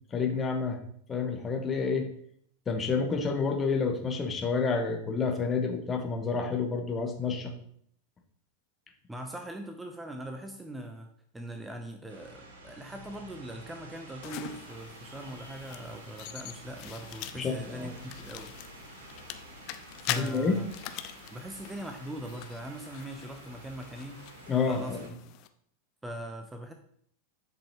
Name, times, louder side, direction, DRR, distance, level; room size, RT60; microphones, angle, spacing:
voice 1, 0.1-0.8 1.1-2.1 2.7-7.5 17.4-17.9 20.1-20.6 24.5-25.0, left 5 dB, 20° left, 4 dB, 1.2 m, -29 dB
voice 2, 9.1-11.1 11.3-18.5 20.0-20.7 21.3-24.3 24.7-25.0 26.0-26.7, right 1 dB, 10° right, 5 dB, 0.7 m, -41 dB
sound 1, 12.1-25.1, right 2 dB, 55° right, 2.6 m, -49 dB
sound 2, 14.2-25.5, left 13 dB, 40° left, 0.5 m, -43 dB
10.0 x 5.4 x 3.0 m, 0.66 s
figure-of-eight pair, 90°, 0 cm